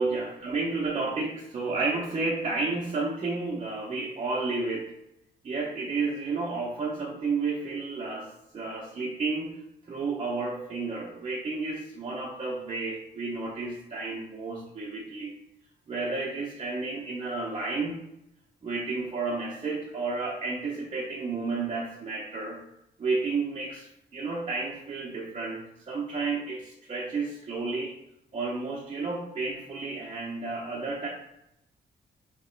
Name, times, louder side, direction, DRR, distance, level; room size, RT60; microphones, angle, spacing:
voice 1, 0.0-4.9 5.4-9.5 9.9-15.3 15.9-18.0 18.6-22.6 23.0-27.9 28.3-31.1, right 3 dB, 30° right, -5 dB, 0.6 m, -31 dB
3.0 x 2.8 x 4.3 m, 0.82 s
wide cardioid pair, 160°, 17 cm